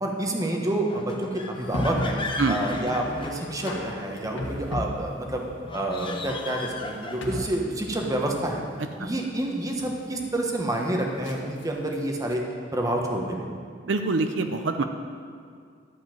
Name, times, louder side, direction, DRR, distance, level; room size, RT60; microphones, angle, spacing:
voice 1, 0.0-2.2 2.5-5.4 5.7-8.6 9.0-12.4 12.7-13.5, right 1 dB, 20° right, 1 dB, 1.2 m, -28 dB
sound 1, 0.8-4.0 5.6-7.6, left 3 dB, 25° left, 0.8 m, -36 dB
sound 2, 1.5-12.3, left 1 dB, 85° left, 1.6 m, -36 dB
voice 2, 8.8-9.1 13.9-14.8, right 3 dB, 75° right, 6 dB, 0.6 m, -25 dB
12.0 x 5.5 x 7.8 m, 2.2 s
head